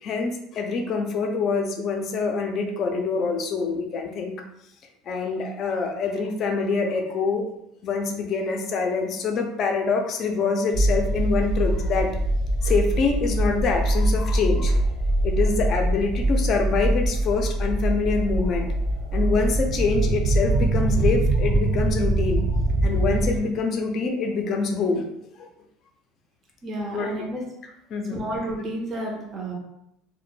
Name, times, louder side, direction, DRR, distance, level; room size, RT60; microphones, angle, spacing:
voice 1, 0.0-4.4 5.1-7.5 7.8-12.1 12.6-14.8 15.2-18.7 19.1-22.5 22.8-25.1 25.4-25.5 26.9-27.1 27.9-28.2, left 4 dB, 45° left, 3 dB, 0.5 m, -25 dB
sound 1, 10.7-23.4, right 1 dB, 65° right, 0.9 m, -23 dB
voice 2, 26.6-27.4 28.1-29.5, right 1 dB, 30° right, -2 dB, 0.6 m, -31 dB
2.1 x 2.0 x 3.1 m, 0.76 s
supercardioid pair, 115°, 0 cm